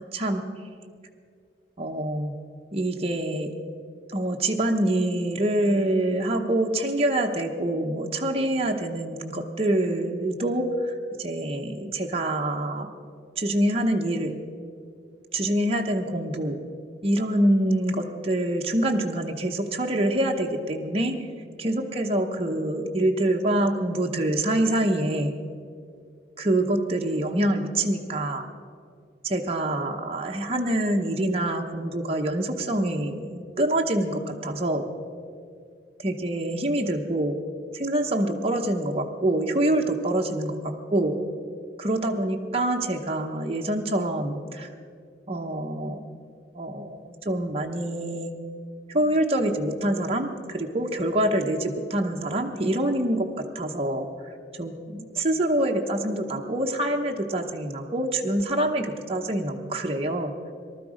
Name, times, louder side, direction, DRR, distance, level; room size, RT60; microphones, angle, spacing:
voice 1, 0.1-0.4 1.8-2.3 2.7-3.5 4.1-12.9 13.4-14.4 15.3-16.6 17.0-21.2 21.6-25.3 26.4-28.4 29.2-34.9 36.0-37.4 37.7-41.2 41.8-44.7 45.3-46.0 46.5-48.3 48.9-53.3 53.5-54.3 54.6-60.3, right 1 dB, 35° right, 1 dB, 0.9 m, -26 dB
19.0 x 12.5 x 5.0 m, 2.3 s
head